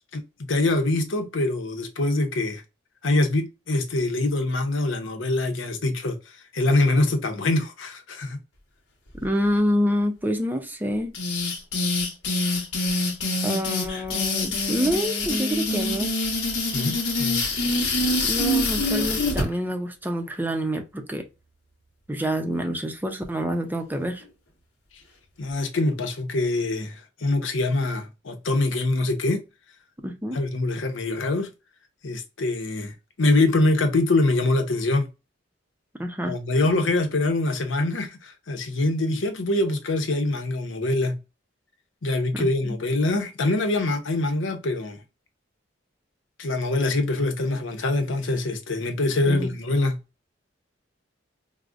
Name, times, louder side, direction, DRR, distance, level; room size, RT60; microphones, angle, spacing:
voice 1, 0.5-2.6 3.0-6.2 6.5-8.4 16.7-17.4 25.4-29.4 30.3-31.5 32.0-35.1 36.3-41.2 42.0-45.0 46.4-50.0, left 2 dB, 90° left, 0.8 m, -24 dB
voice 2, 9.2-11.1 13.4-16.2 18.2-21.3 22.1-24.2 30.0-30.4 36.0-36.4 42.3-42.8 49.3-49.5, equal, 10° right, 0.5 m, -27 dB
sound 1, 11.1-19.5, left 2 dB, 70° left, 1.1 m, -25 dB
4.8 x 2.0 x 2.4 m
head